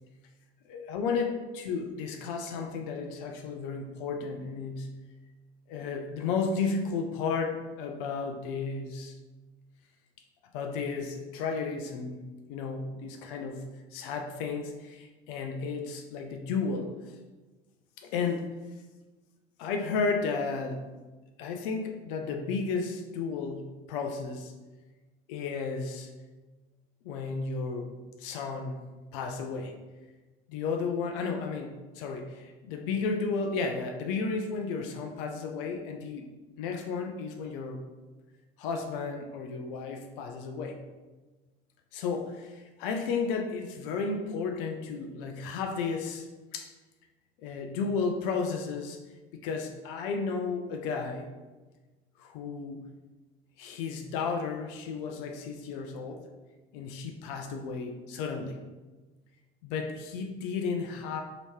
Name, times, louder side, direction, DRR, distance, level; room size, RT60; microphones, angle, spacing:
voice 1, 0.7-5.0 5.7-9.1 10.5-12.2 12.5-17.1 18.0-18.5 19.6-20.9 21.4-24.5 25.3-26.1 27.0-27.9 28.2-28.9 29.1-29.7 30.5-36.3 36.6-37.8 38.6-40.8 41.9-46.3 46.5-46.7 47.4-49.0 49.3-51.3 52.2-52.9 53.6-56.2 56.7-58.6 59.6-61.2, left 4 dB, 55° left, 4 dB, 0.5 m, -33 dB
3.0 x 2.9 x 3.1 m, 1.2 s
figure-of-eight pair, 70°, 32 cm